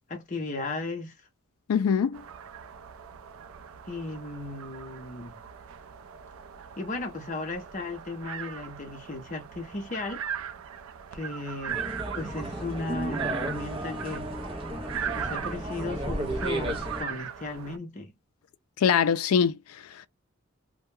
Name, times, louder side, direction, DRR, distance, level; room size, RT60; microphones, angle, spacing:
voice 1, 0.1-1.1 3.9-5.3 6.8-10.2 11.1-11.8 12.1-14.3 15.1-18.1, left 2 dB, 35° left, 0.6 m, -35 dB
voice 2, 1.7-2.2 18.8-20.1, left 7 dB, 90° left, 0.4 m, -24 dB
sound 1, 2.1-17.8, right 8 dB, 80° right, 0.4 m, -39 dB
sound 2, 11.7-17.0, right 1 dB, 25° right, 0.5 m, -33 dB
2.2 x 2.1 x 3.0 m
head